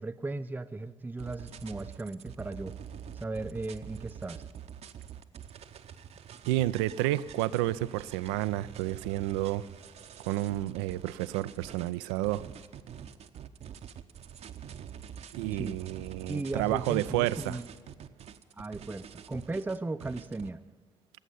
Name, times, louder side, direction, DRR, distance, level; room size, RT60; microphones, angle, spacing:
voice 1, 0.0-2.8 3.1-4.4 15.6-15.8 16.3-17.6 18.6-20.6, right 2 dB, 15° right, 10 dB, 0.5 m, -36 dB
sound 1, 1.2-20.5, right 8 dB, 50° right, 0.8 m, -46 dB
voice 2, 6.5-9.6 10.2-12.4 15.3-17.6, right 16 dB, 70° right, 16 dB, 0.4 m, -30 dB
17.0 x 8.1 x 9.8 m, 1.5 s
figure-of-eight pair, 45°, 14 cm